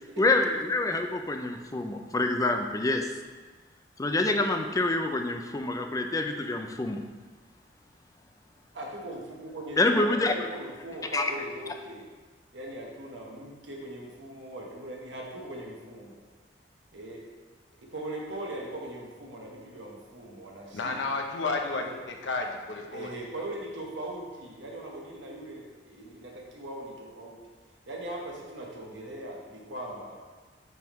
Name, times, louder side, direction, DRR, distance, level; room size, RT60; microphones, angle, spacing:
voice 1, 0.2-3.1 4.0-7.0 9.8-10.3 11.1-11.3, left 2 dB, 20° left, 5 dB, 0.4 m, -26 dB
voice 2, 8.7-12.1 12.5-16.2 16.9-17.3 17.8-21.1 21.7-22.0 22.9-27.4 27.9-30.2, right 1 dB, 85° right, -2 dB, 1.2 m, -40 dB
voice 3, 20.7-23.1, left 3 dB, 85° left, 3 dB, 0.8 m, -32 dB
9.1 x 3.6 x 3.1 m, 1.4 s
head